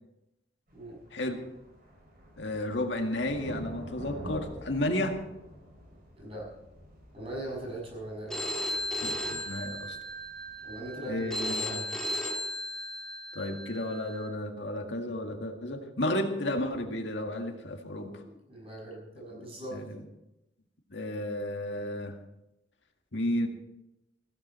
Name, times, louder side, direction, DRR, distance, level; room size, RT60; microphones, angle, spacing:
sound 1, 0.7-11.5, left 1 dB, 55° right, 6.5 m, -48 dB
voice 1, 2.4-5.2 9.0-10.0 11.0-11.8 13.3-18.2 19.3-20.0 20.9-22.2 23.1-23.5, left 1 dB, 90° left, 4 dB, 1.9 m, -32 dB
voice 2, 6.1-6.5 7.1-8.5 10.6-11.8 18.2-19.8, right 1 dB, 35° right, -2 dB, 6.5 m, -40 dB
Telephone, 8.3-14.3, left 1 dB, 5° left, 2.2 m, -35 dB
15.5 x 14.5 x 4.4 m, 0.89 s
head